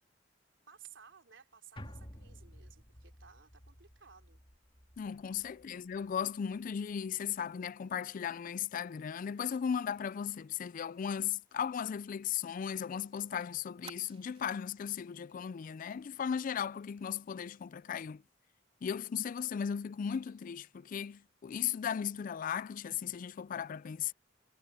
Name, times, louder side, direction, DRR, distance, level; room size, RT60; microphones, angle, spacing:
voice 1, 0.7-4.4 5.5-5.9, right 7 dB, 85° right, 3.2 m, -58 dB
sound 1, 1.8-6.2 6.5-6.6, equal, 30° left, 3.2 m, -53 dB
voice 2, 5.0-18.2 18.8-24.1, left 8 dB, 45° left, 0.3 m, -36 dB
Fire, 9.5-13.0 13.2-13.3 13.8-14.8 15.2-15.4 15.7-15.9, right 5 dB, 30° right, 3.0 m, -59 dB
head